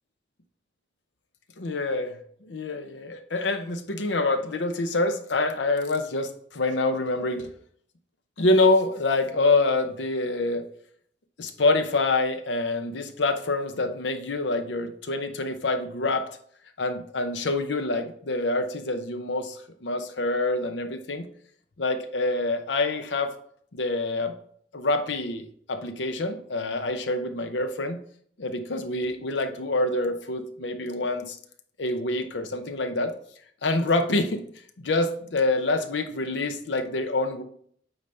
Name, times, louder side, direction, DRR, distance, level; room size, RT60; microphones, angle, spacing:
voice 1, 1.6-7.5 8.4-10.6 11.4-16.3 16.8-21.3 21.8-23.3 23.7-24.3 24.7-28.0 28.4-31.4 31.8-33.1 33.6-34.4 34.8-37.4, left 2 dB, 70° left, 8 dB, 0.7 m, -26 dB
8.7 x 4.1 x 3.3 m, 0.62 s
head